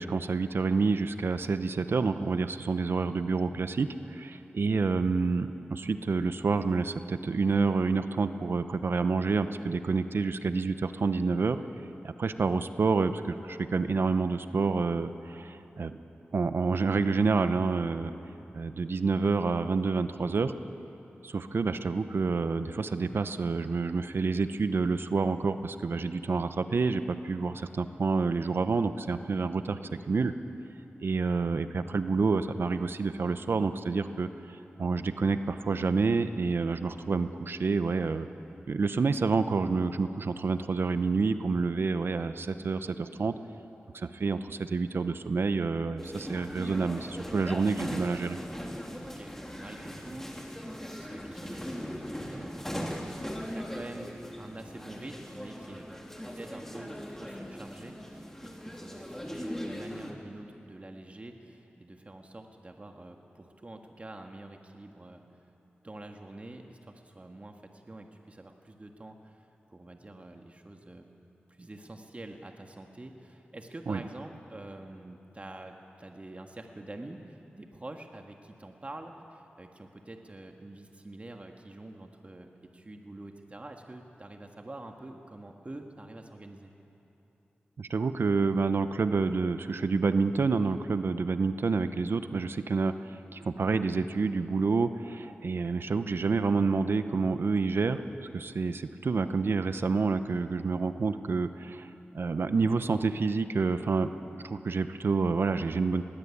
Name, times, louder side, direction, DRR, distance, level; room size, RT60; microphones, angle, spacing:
voice 1, 0.0-11.6 12.0-16.0 16.3-18.1 18.5-20.5 21.2-29.8 30.1-30.3 31.0-38.3 38.7-43.3 43.9-48.4 73.9-74.0 87.8-98.0 98.3-104.1 104.4-106.0, right 4 dB, 70° right, 10 dB, 0.8 m, -28 dB
sound 1, 46.0-60.1, equal, 10° left, 3.3 m, -39 dB
voice 2, 49.0-53.3 53.5-65.2 65.8-71.1 71.5-86.7, right 2 dB, 35° right, 3 dB, 1.8 m, -46 dB
21.0 x 19.0 x 8.6 m, 3.0 s
cardioid pair, 60°, 4 cm